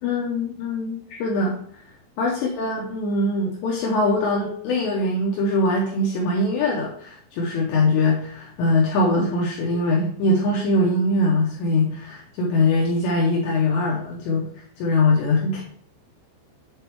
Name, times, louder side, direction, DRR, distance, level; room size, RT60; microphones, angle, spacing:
voice 1, 0.0-1.6 2.2-15.6, left 2 dB, 90° left, -2 dB, 2.5 m, -22 dB
8.0 x 3.4 x 4.6 m, 0.62 s
omnidirectional pair, 6.0 m